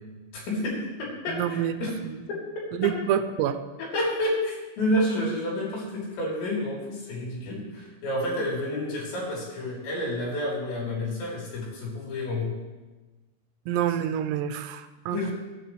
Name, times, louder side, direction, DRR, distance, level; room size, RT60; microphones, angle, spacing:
voice 1, 0.3-2.0 2.3-2.4 2.8-2.9 3.8-12.6 15.1-15.3, left 1 dB, 80° left, -4 dB, 6.3 m, -29 dB
voice 2, 1.3-1.7 2.1-2.2 2.7-3.6 13.7-15.3, right 9 dB, 85° right, 10 dB, 2.7 m, -27 dB
26.5 x 9.9 x 3.4 m, 1.2 s
omnidirectional pair, 5.1 m